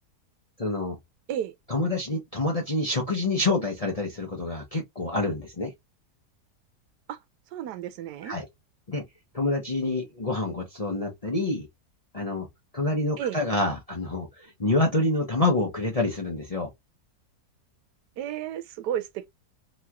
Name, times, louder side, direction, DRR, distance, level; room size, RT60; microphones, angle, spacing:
voice 1, 0.6-1.0 1.7-5.7 8.2-8.4 8.9-9.0 9.3-11.7 12.1-12.5 12.7-16.7, left 2 dB, 35° left, 0.6 m, -27 dB
voice 2, 7.5-8.3 13.2-13.4 18.2-19.3, right 10 dB, 85° right, 1.2 m, -32 dB
3.1 x 2.9 x 2.3 m
omnidirectional pair, 1.7 m